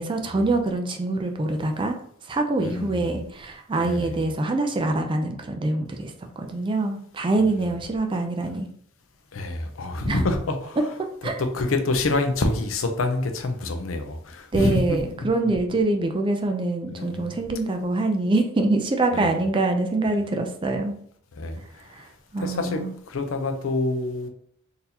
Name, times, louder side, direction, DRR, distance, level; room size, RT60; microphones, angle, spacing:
voice 1, 0.0-2.0 2.3-8.7 10.1-10.2 11.2-11.3 14.5-20.9 21.9-22.1 22.3-22.9, right 2 dB, 25° right, 4 dB, 0.4 m, -25 dB
voice 2, 2.6-3.1 3.8-4.2 7.4-7.6 9.3-15.0 16.9-17.4 19.1-19.4 20.1-20.2 21.4-21.6 22.4-22.8 23.1-24.3, left 2 dB, 80° left, 6 dB, 0.6 m, -27 dB
3.8 x 2.7 x 2.8 m, 0.65 s
head